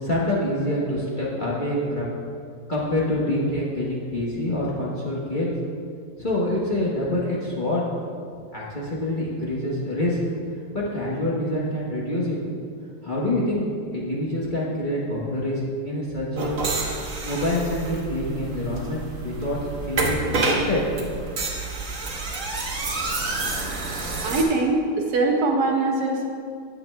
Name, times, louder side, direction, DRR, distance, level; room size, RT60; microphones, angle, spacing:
voice 1, 0.0-2.1 2.7-5.5 6.2-7.8 8.5-10.2 10.7-12.4 13.0-16.6 17.2-19.6 19.9-20.8, left 1 dB, 35° left, -6 dB, 1.0 m, -26 dB
sound 1, 16.4-24.4, right 3 dB, 50° right, 1.3 m, -28 dB
voice 2, 24.2-26.3, right 2 dB, 70° right, 1 dB, 1.3 m, -22 dB
9.2 x 8.4 x 2.2 m, 2.3 s
omnidirectional pair, 1.8 m